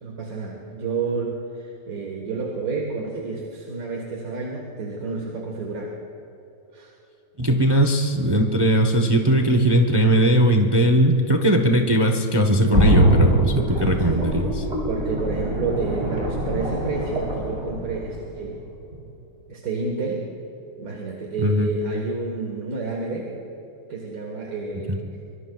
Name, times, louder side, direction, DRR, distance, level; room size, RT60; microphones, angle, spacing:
voice 1, 0.0-5.9 6.7-6.9 7.5-7.6 13.7-14.3 14.6-18.6 19.5-20.3 20.8-23.3 23.9-25.1, right 4 dB, 75° right, -1 dB, 1.9 m, -30 dB
voice 2, 7.4-14.6 21.4-21.7 24.9-25.0, right 1 dB, 20° right, 4 dB, 0.7 m, -19 dB
sound 1, 12.7-18.5 18.9-19.0, equal, 40° right, 3.9 m, -22 dB
24.5 x 24.0 x 2.3 m, 2.9 s
omnidirectional pair, 1.6 m